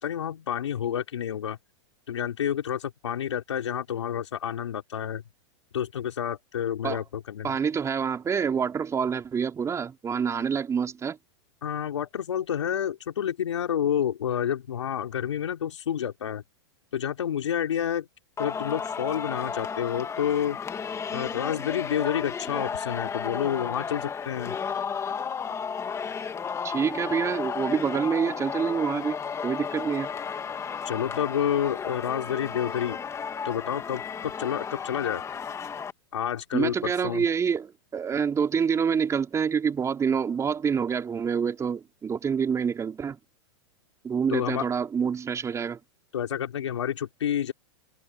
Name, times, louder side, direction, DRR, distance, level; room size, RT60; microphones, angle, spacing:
voice 1, 0.0-1.6 2.1-5.2 5.7-7.5 11.6-16.4 16.9-18.1 18.4-20.6 21.1-24.6 30.8-33.0 33.4-35.2 36.1-37.3 44.3-44.7 46.1-47.5, left 9 dB, 85° left, 4.5 m, -29 dB
voice 2, 7.4-11.2 26.6-29.2 29.4-30.1 36.5-43.2 44.0-45.8, right 6 dB, 20° right, 4.8 m, -27 dB
Singing, 18.4-35.9, left 6 dB, 20° left, 2.3 m, -33 dB
hypercardioid pair, 120°, 15 cm